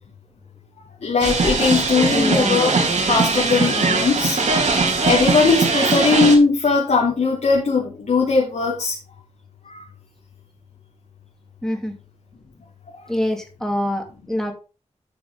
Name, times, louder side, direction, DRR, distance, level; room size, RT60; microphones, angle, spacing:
voice 1, 1.0-2.7 3.1-4.4 5.0-8.9, left 4 dB, 80° left, -2 dB, 2.8 m, -19 dB
sound 1, 1.2-6.4, right 3 dB, 80° right, 3.3 m, -20 dB
voice 2, 2.1-2.7 11.6-11.9 13.1-14.5, left 1 dB, 5° left, 3 dB, 2.9 m, -25 dB
12.5 x 7.1 x 3.7 m, 0.32 s
wide cardioid pair, 105°, 12 cm